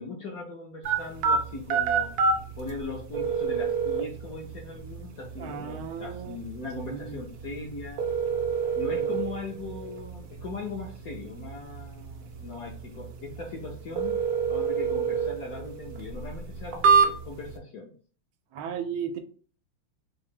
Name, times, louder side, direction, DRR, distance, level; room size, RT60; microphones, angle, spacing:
voice 1, 0.0-2.1 2.6-8.0 8.7-14.2 14.5-17.9, left 3 dB, 65° left, 0 dB, 0.9 m, -39 dB
sound 1, 0.8-17.6, right 5 dB, 65° right, 1.0 m, -29 dB
voice 2, 5.4-6.4 6.8-7.2 18.5-19.2, right 7 dB, 80° right, 7 dB, 1.4 m, -35 dB
3.8 x 2.7 x 3.6 m, 0.42 s
omnidirectional pair, 2.3 m